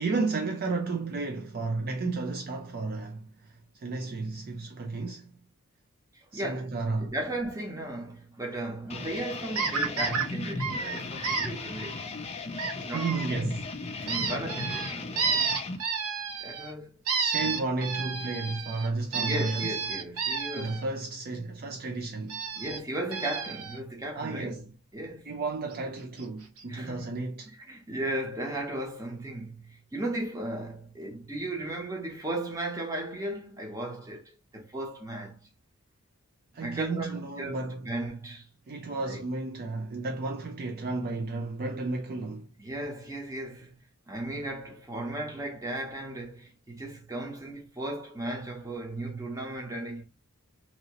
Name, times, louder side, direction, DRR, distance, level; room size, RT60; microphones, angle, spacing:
voice 1, 0.0-5.3 6.3-7.1 12.8-14.1 17.1-19.8 20.5-22.4 24.1-24.7 25.2-27.5 36.5-37.9 38.7-42.5, right 3 dB, 45° right, 0.4 m, -33 dB
voice 2, 6.1-12.2 12.7-13.4 14.0-15.4 16.4-17.0 17.4-17.5 19.1-20.8 22.6-24.6 24.9-25.3 26.7-27.1 27.6-35.5 36.5-38.5 39.0-39.2 42.6-43.8 44.1-50.0, right 1 dB, 15° right, 0.8 m, -36 dB
sound 1, 8.9-15.8, left 3 dB, 30° left, 0.4 m, -37 dB
sound 2, 9.5-10.2 10.6-11.5 12.6-13.3 14.1-16.7 17.1-20.8 22.3-22.8 23.1-23.8 25.7-25.8 26.2-26.3 26.6-26.7, right 5 dB, 75° right, 0.7 m, -31 dB
2.9 x 2.7 x 2.9 m
head